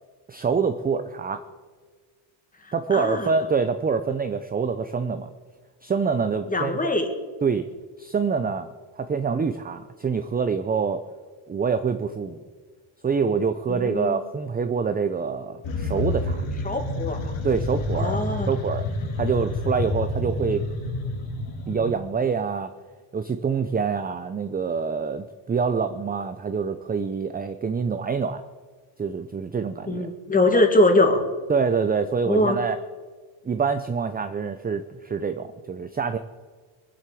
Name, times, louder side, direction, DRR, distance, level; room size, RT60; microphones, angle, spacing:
voice 1, 0.3-1.4 2.7-5.3 5.8-6.8 7.4-7.6 8.0-8.7 9.0-11.0 11.5-12.4 13.0-16.4 17.4-18.2 18.5-18.8 19.2-20.7 21.7-22.7 23.1-28.4 29.0-30.1 31.5-32.8 33.4-36.2, right 5 dB, 20° right, 9 dB, 0.6 m, -26 dB
voice 2, 2.6-3.3 6.5-7.1 13.7-14.2 16.6-17.3 17.9-18.5 29.9-31.2 32.3-32.6, left 2 dB, 15° left, 5 dB, 2.2 m, -22 dB
sound 1, 15.6-21.9, left 2 dB, 65° left, 3.5 m, -28 dB
22.0 x 7.8 x 8.4 m, 1.5 s
cardioid pair, 135°, 50 cm